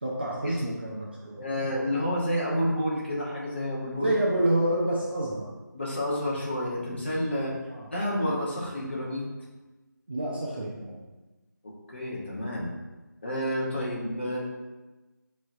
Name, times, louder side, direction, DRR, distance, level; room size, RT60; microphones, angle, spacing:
voice 1, 0.0-1.4 4.0-5.5 7.7-7.9 10.1-11.0, right 1 dB, 30° right, -4 dB, 0.5 m, -28 dB
voice 2, 1.4-4.1 5.7-7.5 7.9-9.2 11.6-12.7 13.2-14.4, equal, 35° left, -5 dB, 1.0 m, -29 dB
5.4 x 3.1 x 2.6 m, 1.1 s
figure-of-eight pair, 170°, 10 cm